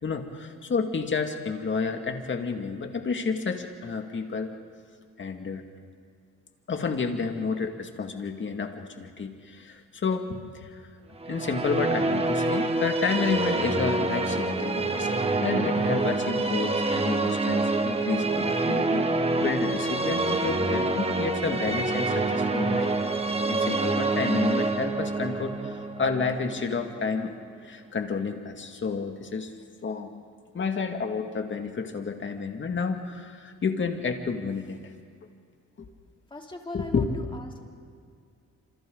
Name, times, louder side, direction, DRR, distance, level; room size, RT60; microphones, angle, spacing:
voice 1, 0.0-4.5 5.2-5.6 6.7-10.8 11.3-15.1 15.4-22.9 23.5-27.3 27.6-29.5 29.8-30.2 30.5-34.8 35.8-35.9 36.7-37.1, left 5 dB, 40° left, 4 dB, 2.2 m, -30 dB
sound 1, 11.2-27.3, right 2 dB, 20° right, 1.7 m, -26 dB
voice 2, 36.3-37.6, left 2 dB, 15° left, 1 dB, 3.1 m, -40 dB
27.5 x 27.0 x 4.0 m, 2.2 s
cardioid pair, 90°, 30 cm